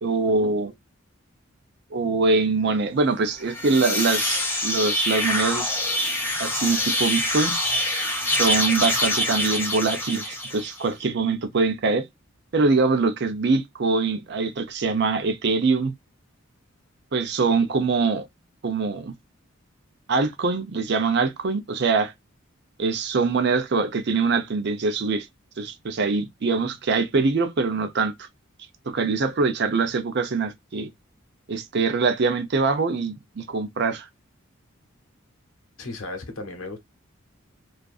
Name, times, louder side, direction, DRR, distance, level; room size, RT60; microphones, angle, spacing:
voice 1, 0.0-0.7 1.9-5.7 6.4-7.5 8.3-12.0 12.5-15.9 17.1-18.3 18.6-19.1 20.1-22.1 22.8-25.3 25.6-28.1 28.9-30.9 31.5-34.1, right 4 dB, 55° right, 0.5 m, -23 dB
sound 1, 3.4-10.8, left 1 dB, 10° left, 0.6 m, -25 dB
voice 2, 35.8-36.8, left 2 dB, 85° left, 0.8 m, -35 dB
2.5 x 2.4 x 2.3 m
head